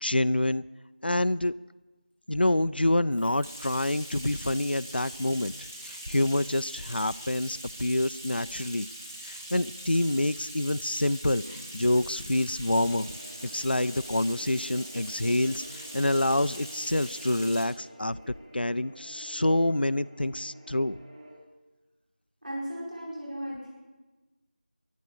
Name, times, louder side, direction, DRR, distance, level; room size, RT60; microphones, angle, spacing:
voice 1, 0.0-0.6 1.0-1.5 2.3-8.9 9.2-11.4 11.7-13.1 13.5-18.2 18.5-21.0, left 1 dB, 85° left, 14 dB, 0.4 m, -27 dB
Bathtub (filling or washing), 3.1-17.8, right 1 dB, 10° right, 0.8 m, -42 dB
sound 1, 12.7-21.3, right 1 dB, 30° right, 3.7 m, -49 dB
voice 2, 22.4-23.7, equal, 55° right, -6 dB, 5.4 m, -36 dB
23.0 x 11.0 x 5.0 m, 1.2 s
figure-of-eight pair, 175°, 5 cm